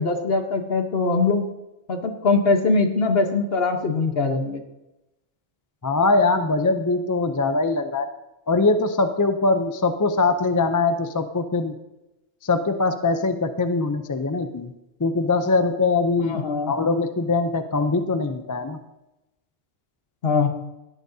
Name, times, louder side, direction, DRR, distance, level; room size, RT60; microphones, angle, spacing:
voice 1, 0.0-1.4 1.9-4.6 16.3-16.7 20.2-20.5, left 3 dB, 55° left, 5 dB, 1.3 m, -22 dB
voice 2, 5.8-8.1 8.5-11.7 12.4-14.7 15.0-18.8, left 3 dB, 25° left, 8 dB, 0.4 m, -22 dB
17.5 x 11.5 x 2.8 m, 0.96 s
omnidirectional pair, 1.3 m